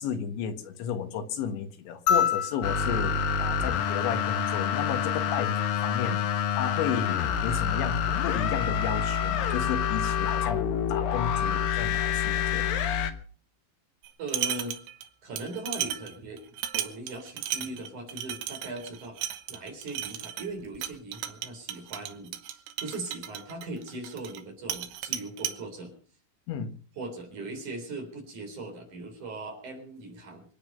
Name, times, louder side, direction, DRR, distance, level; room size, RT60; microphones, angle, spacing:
voice 1, 0.0-12.7 26.5-26.8, left 7 dB, 90° left, 8 dB, 3.9 m, -33 dB
sound 1, 2.1-4.6 6.2-6.3, left 8 dB, 50° left, 3.3 m, -29 dB
sound 2, 2.6-13.1, left 8 dB, 65° left, 2.6 m, -27 dB
sound 3, 14.0-15.1 15.4-24.4 24.7-25.6, right 11 dB, 85° right, 3.5 m, -35 dB
voice 2, 14.2-14.8 15.2-16.4 16.7-19.2 19.5-25.9 27.0-30.4, right 2 dB, 45° right, 3 dB, 5.2 m, -39 dB
25.5 x 9.5 x 5.4 m, 0.42 s
omnidirectional pair, 5.1 m